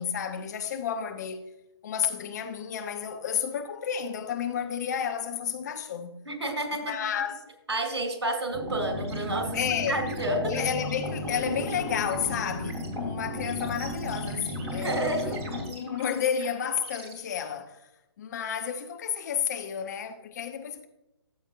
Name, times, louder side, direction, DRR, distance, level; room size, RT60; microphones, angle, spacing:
voice 1, 0.0-1.5 1.8-6.2 6.9-7.4 9.5-10.0 10.4-17.9 18.2-20.9, left 8 dB, 40° left, 0.9 m, -31 dB
voice 2, 6.3-7.0 7.7-9.6 9.9-10.7 14.8-15.4, right 1 dB, 75° right, 2.4 m, -30 dB
sound 1, 8.5-15.6, left 1 dB, 5° right, 2.8 m, -34 dB
sound 2, 9.0-17.1, right 3 dB, 35° right, 2.4 m, -47 dB
13.5 x 7.1 x 2.5 m
figure-of-eight pair, 135°, 14 cm